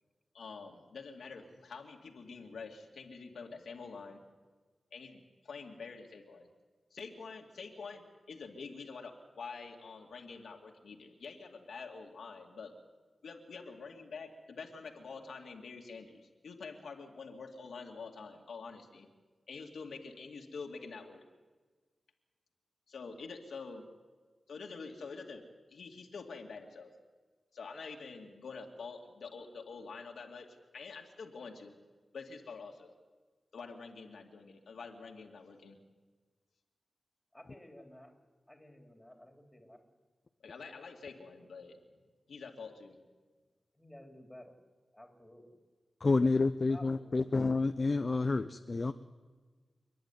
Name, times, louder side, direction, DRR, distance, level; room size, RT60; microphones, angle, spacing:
voice 1, 0.3-4.2 4.9-6.5 6.9-12.7 13.2-19.1 19.5-21.2 22.9-23.8 24.5-26.9 27.5-31.7 32.1-32.9 33.5-35.8 40.4-41.8 42.3-43.0, left 4 dB, 90° left, 1 dB, 2.4 m, -47 dB
voice 2, 37.3-38.1 38.5-39.8 43.7-44.6 44.9-45.6 46.7-47.3, left 1 dB, 10° left, 3 dB, 3.6 m, -54 dB
voice 3, 46.0-48.9, left 3 dB, 45° left, 9 dB, 0.7 m, -29 dB
29.0 x 11.0 x 9.7 m, 1.4 s
wide cardioid pair, 80°, 0 cm